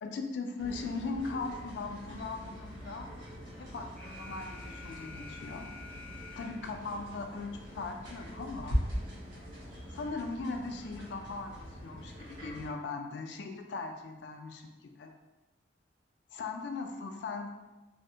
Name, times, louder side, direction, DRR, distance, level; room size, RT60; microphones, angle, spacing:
voice 1, 0.0-3.1 3.6-5.7 6.4-8.8 9.9-15.1 16.3-17.5, left 3 dB, 60° left, 4 dB, 0.3 m, -39 dB
sound 1, 0.6-12.7, equal, 75° right, 1.0 m, -41 dB
Alarm, 4.0-6.9, left 3 dB, 5° left, 0.5 m, -49 dB
3.4 x 2.0 x 2.7 m, 1.1 s
head